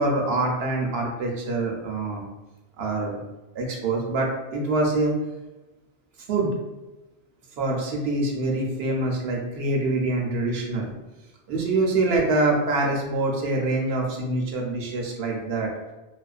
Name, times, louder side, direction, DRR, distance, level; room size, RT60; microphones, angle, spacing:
voice 1, 0.0-2.2 2.8-3.2 3.5-5.2 6.3-6.5 7.6-10.9 11.5-15.7, right 2 dB, 75° right, 0 dB, 0.8 m, -25 dB
2.4 x 2.2 x 2.3 m, 1.1 s
omnidirectional pair, 1.1 m